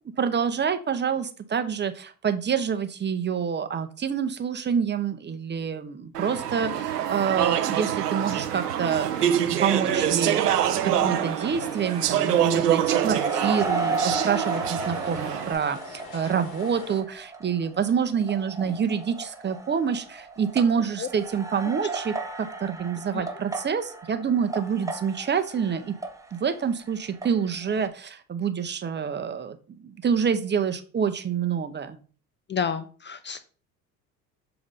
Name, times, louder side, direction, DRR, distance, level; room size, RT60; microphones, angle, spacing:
voice 1, 0.2-25.9 26.3-32.0, right 7 dB, 25° right, 8 dB, 0.7 m, -27 dB
Speech / Chatter, 6.1-15.5, right 10 dB, 90° right, 0.6 m, -25 dB
sound 1, 6.2-17.0, left 4 dB, 55° left, 1.9 m, -44 dB
sound 2, 10.7-27.4 27.6-27.9, right 3 dB, 5° right, 1.1 m, -35 dB
voice 2, 32.5-33.4, left 6 dB, 25° left, 11 dB, 0.6 m, -30 dB
7.2 x 2.9 x 5.2 m, 0.39 s
hypercardioid pair, 70°, 46 cm